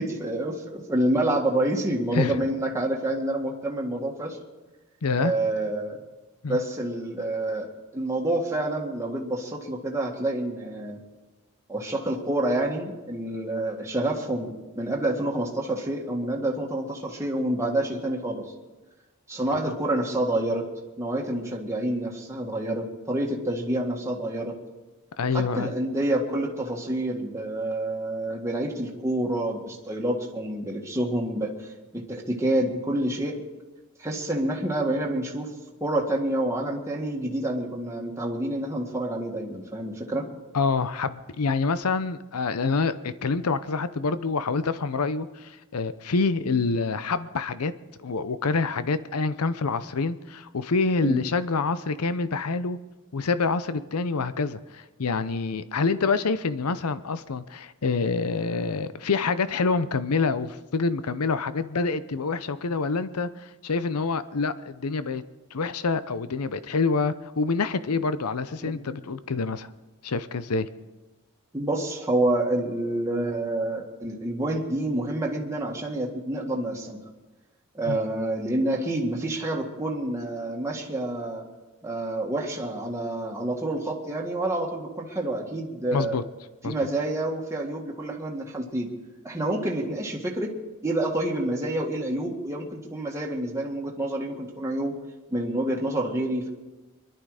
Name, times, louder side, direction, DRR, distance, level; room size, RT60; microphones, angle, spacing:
voice 1, 0.0-4.4 5.2-6.0 6.5-7.7 7.9-11.0 11.7-18.5 19.3-20.7 21.0-24.5 25.3-31.7 31.9-33.4 34.0-35.5 35.8-40.2 51.0-51.2 68.6-68.7 71.5-77.0 77.7-81.4 81.8-86.2 86.6-88.9 89.2-90.5 90.8-94.9 95.3-96.5, right 1 dB, 15° right, -1 dB, 1.9 m, -28 dB
voice 2, 5.0-5.3 6.4-6.6 19.5-19.6 25.2-25.7 40.5-47.7 48.0-52.8 53.1-65.2 65.5-69.7 70.0-70.7 77.9-78.0 85.9-86.2 86.6-86.7, left 4 dB, 85° left, 14 dB, 0.7 m, -26 dB
24.0 x 11.5 x 4.9 m, 1.1 s
head